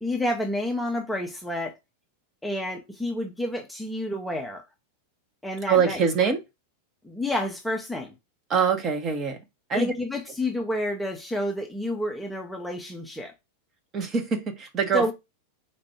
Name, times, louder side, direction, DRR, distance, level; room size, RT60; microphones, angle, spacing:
voice 1, 0.0-1.8 2.4-4.6 5.4-6.3 7.0-8.1 9.7-13.3 14.9-15.1, left 1 dB, ahead, 0.8 m, -29 dB
voice 2, 5.7-6.4 8.5-9.4 9.7-9.9 13.9-15.1, right 6 dB, 25° right, 1.1 m, -24 dB
4.5 x 2.6 x 4.3 m
figure-of-eight pair, 90°, 0 cm